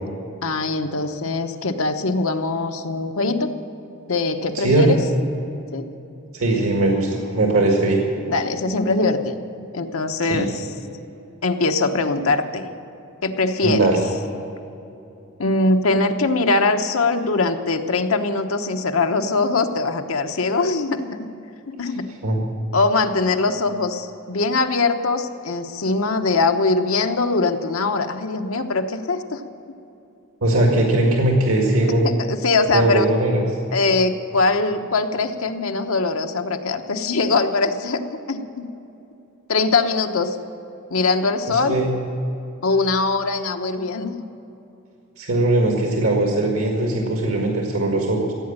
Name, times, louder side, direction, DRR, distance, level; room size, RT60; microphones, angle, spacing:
voice 1, 0.4-3.5 4.1-5.0 5.7-5.9 8.3-9.4 9.7-10.7 11.4-12.7 13.2-13.9 15.4-21.3 21.7-22.1 22.7-29.4 32.0-33.1 33.7-38.0 38.3-38.7 39.5-40.4 40.9-41.8 42.6-44.2, left 3 dB, 75° left, 5 dB, 1.0 m, -22 dB
voice 2, 4.6-5.0 6.3-8.0 10.3-10.4 13.6-14.0 22.2-22.5 30.4-32.0 32.7-33.4 41.7-41.9 45.2-48.3, right 2 dB, 90° right, 0 dB, 2.0 m, -19 dB
15.5 x 8.9 x 8.8 m, 2.8 s
head